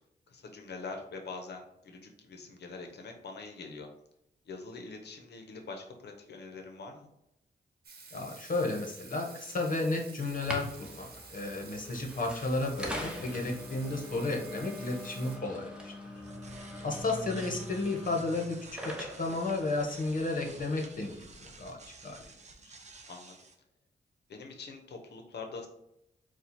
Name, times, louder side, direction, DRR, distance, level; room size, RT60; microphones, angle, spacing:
voice 1, 0.3-3.9 4.4-7.1 23.1-23.4 24.3-25.7, left 4 dB, 75° left, 3 dB, 0.9 m, -44 dB
Water tap faucet / Sink (filling or washing), 7.8-15.4, right 4 dB, 65° right, 1.0 m, -51 dB
voice 2, 8.1-15.7 16.8-21.8 22.0-22.2 22.6-22.7, left 2 dB, 50° left, 1 dB, 1.2 m, -33 dB
sound 1, 10.3-20.6, left 1 dB, 5° right, 1.0 m, -44 dB
sound 2, 16.0-23.5, right 2 dB, 40° right, 0.8 m, -48 dB
4.3 x 2.4 x 4.2 m, 0.81 s
cardioid pair, 70°, 18 cm